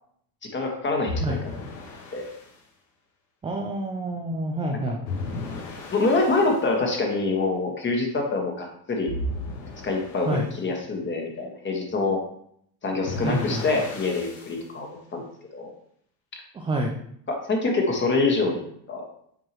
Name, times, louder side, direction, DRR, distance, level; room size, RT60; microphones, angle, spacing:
voice 1, 0.4-1.4 2.1-2.3 5.9-9.1 9.8-12.2 12.8-15.2 15.5-15.7 17.3-19.0, left 3 dB, 20° left, 2 dB, 1.5 m, -25 dB
sound 1, 1.1-2.5 5.1-6.6 9.1-10.4 13.1-14.6, left 2 dB, 90° left, 1.7 m, -34 dB
voice 2, 3.4-5.0 10.3-10.5 13.2-13.6 16.5-17.0, right 1 dB, 10° right, 1 dB, 0.4 m, -28 dB
7.5 x 4.6 x 3.0 m, 0.68 s
supercardioid pair, 115°, 50 cm